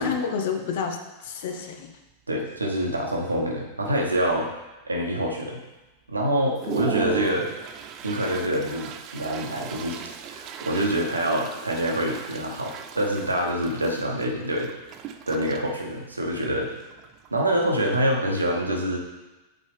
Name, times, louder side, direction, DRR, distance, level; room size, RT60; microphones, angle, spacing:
voice 1, 0.0-1.9 6.7-6.8, left 6 dB, 55° left, 5 dB, 0.8 m, -29 dB
Toilet flush, 1.3-1.4 1.9-2.1 2.4-3.0 3.5-3.6 3.9-4.6 5.1-5.2 5.7-5.8 6.2-18.2, right 9 dB, 35° right, 0.4 m, -38 dB
voice 2, 2.3-4.5 4.8-5.6 6.1-7.5 8.0-14.7 15.3-16.7 17.3-19.0, right 1 dB, 80° right, -1 dB, 1.0 m, -26 dB
8.2 x 4.2 x 3.4 m, 1.1 s
figure-of-eight pair, 90°, 0 cm